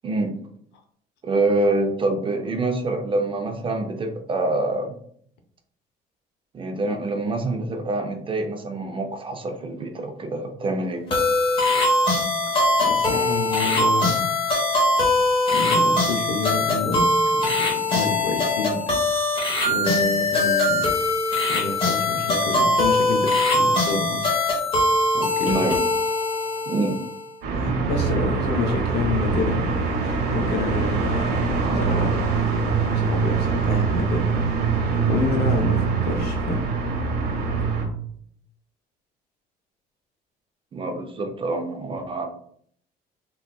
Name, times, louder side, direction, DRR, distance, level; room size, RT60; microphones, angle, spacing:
voice 1, 0.0-0.3 1.2-5.0 6.5-11.0 25.4-25.8 26.7-26.9 40.7-42.3, right 2 dB, 30° right, 5 dB, 0.5 m, -26 dB
sound 1, 11.1-27.3, left 2 dB, 30° left, 1.1 m, -21 dB
voice 2, 12.8-14.3 15.5-19.0 19.6-20.9 21.5-24.2 25.1-25.6 27.5-32.1 32.8-34.6 35.1-36.7, left 3 dB, 75° left, 4 dB, 0.5 m, -29 dB
sound 2, 27.4-37.9, right 4 dB, 75° right, 0.9 m, -23 dB
3.7 x 2.3 x 2.3 m, 0.64 s
cardioid pair, 110°, 17 cm